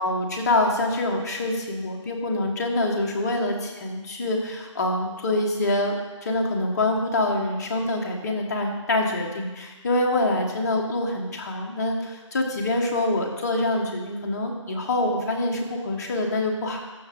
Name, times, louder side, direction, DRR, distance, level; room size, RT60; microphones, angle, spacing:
voice 1, 0.0-6.0 6.2-16.8, left 2 dB, 35° left, 1 dB, 1.2 m, -25 dB
13.5 x 4.9 x 3.6 m, 1.2 s
figure-of-eight pair, 160°, 17 cm